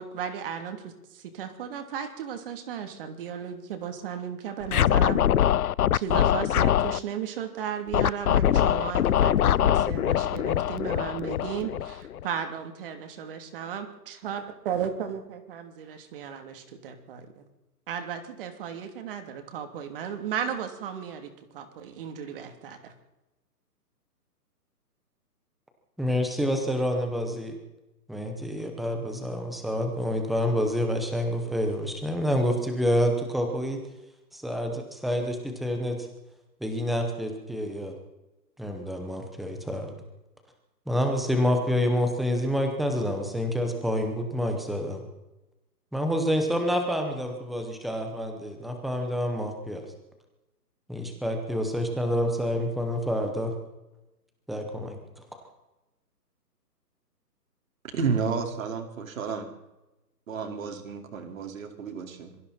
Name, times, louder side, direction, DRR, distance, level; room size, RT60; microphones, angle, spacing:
voice 1, 0.0-5.2 5.9-17.5 17.9-22.9, right 8 dB, 35° right, 6 dB, 3.0 m, -35 dB
Scratching (performance technique), 4.7-7.0 7.9-12.2, left 10 dB, 65° left, 0.6 m, -23 dB
voice 2, 26.0-27.6 28.1-33.8 34.3-36.1 36.6-37.9 38.6-39.9 40.9-45.0 45.9-49.8 50.9-53.5 54.5-55.0, equal, ahead, 4 dB, 0.8 m, -28 dB
voice 3, 57.9-59.5 60.3-62.4, right 5 dB, 55° right, 3 dB, 4.5 m, -31 dB
26.5 x 23.0 x 4.3 m, 0.99 s
hypercardioid pair, 155°, 48 cm